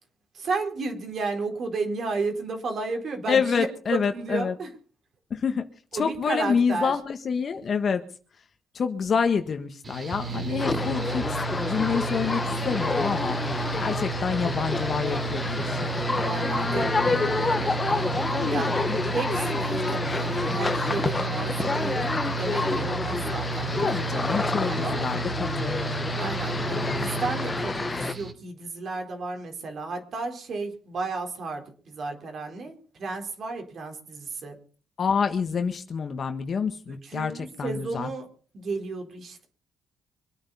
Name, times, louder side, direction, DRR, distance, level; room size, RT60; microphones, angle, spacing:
voice 1, 0.3-4.7 5.9-6.9 10.3-10.6 16.1-18.7 19.1-22.0 22.4-24.1 24.7-25.0 26.2-34.6 37.0-38.3 38.5-39.5, right 3 dB, 55° right, 4 dB, 4.1 m, -33 dB
voice 2, 3.3-4.5 5.3-5.6 6.0-8.0 8.7-16.0 18.4-18.6 18.9-19.0 23.8-25.7 35.0-38.1, left 6 dB, 50° left, 7 dB, 1.5 m, -27 dB
Mechanical fan, 9.8-28.3, right 5 dB, 35° right, 2.8 m, -32 dB
sound 1, 10.6-28.1, left 3 dB, 25° left, 1.2 m, -28 dB
25.0 x 9.0 x 5.5 m, 0.41 s
cardioid pair, 90°, 0 cm